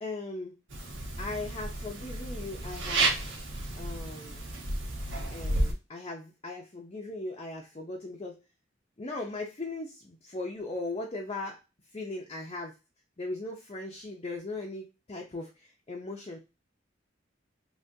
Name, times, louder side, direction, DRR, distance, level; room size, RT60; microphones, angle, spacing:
voice 1, 0.0-0.5 1.2-3.3 3.8-4.5 5.3-8.4 9.0-11.6 11.9-12.8 13.2-16.4, left 2 dB, 30° left, -1 dB, 0.6 m, -38 dB
sound 1, 0.7-5.7, right 2 dB, 85° right, 1.2 m, -32 dB
3.6 x 3.0 x 2.7 m, 0.27 s
head